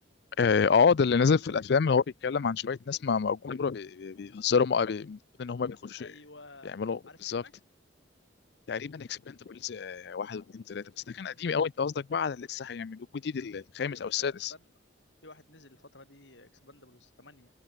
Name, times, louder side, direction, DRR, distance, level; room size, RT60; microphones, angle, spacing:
voice 1, 0.4-6.1 6.7-7.4 8.7-14.5, left 5 dB, 60° left, 0.4 m, -28 dB
voice 2, 5.9-6.8 7.1-7.5 13.8-14.7 15.2-17.5, left 2 dB, 80° left, 7.5 m, -53 dB
head